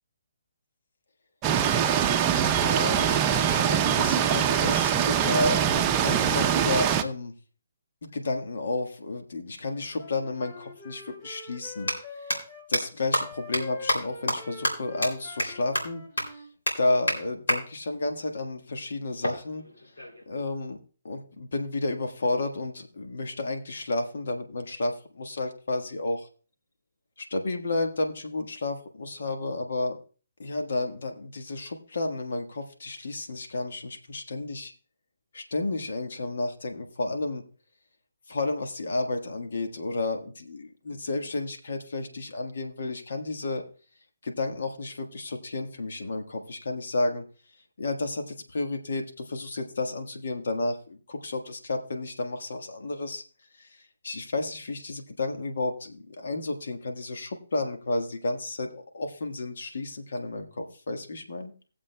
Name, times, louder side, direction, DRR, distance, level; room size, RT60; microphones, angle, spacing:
sound 1, 1.4-7.0, right 9 dB, 25° right, 0.6 m, -23 dB
voice 1, 2.5-7.3 8.0-11.9 12.2-12.3 12.7-16.0 16.3-16.4 16.8-19.6 20.3-20.8 21.0-26.3 27.2-30.0 30.4-34.7 35.3-37.4 38.3-43.6 44.2-47.2 47.8-53.2 53.6-61.5, left 2 dB, 70° left, 5 dB, 1.5 m, -31 dB
Wind instrument woodwind instrument, 9.7-12.7 13.1-16.5, left 3 dB, 35° left, 3.0 m, -45 dB
sound 2, 10.6-10.7 11.7-11.9 12.3-12.4 12.7-12.8 13.1-13.2 13.5-13.6 13.9-14.0 14.3-14.4 14.6-14.7 15.0-15.1 15.4-15.5 15.7-15.8 16.2-16.3 16.7-16.8 17.1-17.2 17.5-17.6 19.2-20.2, equal, 85° left, 3.0 m, -26 dB
18.5 x 7.4 x 2.2 m, 0.39 s
hypercardioid pair, 145°, 0 cm